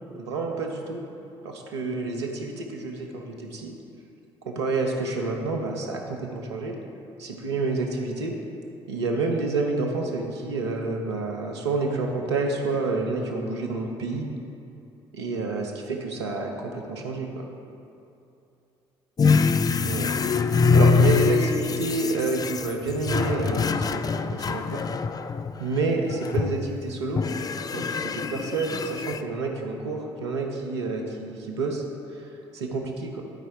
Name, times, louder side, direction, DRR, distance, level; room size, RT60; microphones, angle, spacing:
voice 1, 0.1-1.0 1.4-3.7 4.4-6.7 7.2-8.3 8.9-14.3 15.1-17.5 19.8-20.1 20.7-24.0 24.3-24.8 25.6-27.2 27.7-31.8 32.1-33.2, right 3 dB, 85° right, 1 dB, 0.8 m, -29 dB
sound 1, 19.2-25.6 26.1-26.7 27.2-29.2, left 4 dB, 25° left, 0.3 m, -24 dB
11.5 x 4.5 x 4.6 m, 2.7 s
figure-of-eight pair, 45°, 14 cm